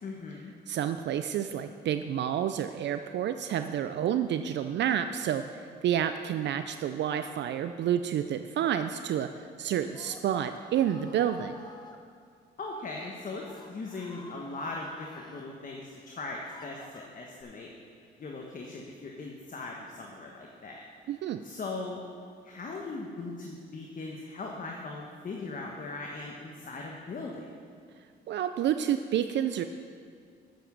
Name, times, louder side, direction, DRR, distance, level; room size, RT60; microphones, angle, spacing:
voice 1, 0.0-0.5 12.6-17.7 18.2-20.8 21.4-22.0 22.4-27.5, left 3 dB, 40° left, 0 dB, 1.1 m, -39 dB
voice 2, 0.7-11.6 21.1-21.4 28.3-29.6, right 9 dB, 65° right, 9 dB, 0.4 m, -29 dB
Screaming, 9.6-12.0 12.8-13.1 13.4-15.5 16.0-17.4, left 2 dB, 20° left, 1.0 m, -51 dB
9.1 x 7.1 x 6.1 m, 2.2 s
cardioid pair, 90°, 20 cm